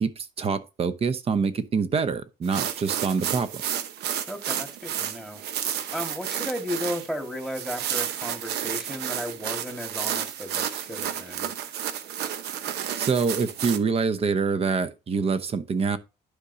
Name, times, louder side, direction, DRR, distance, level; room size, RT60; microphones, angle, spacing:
voice 1, 0.0-3.6 13.0-16.0, right 5 dB, 35° right, 0.9 m, -25 dB
sound 1, 2.4-13.8, right 10 dB, 75° right, 0.9 m, -31 dB
voice 2, 4.3-5.4 5.9-11.5, equal, ahead, 1.7 m, -34 dB
11.5 x 5.1 x 2.7 m
cardioid pair, 110°, 17 cm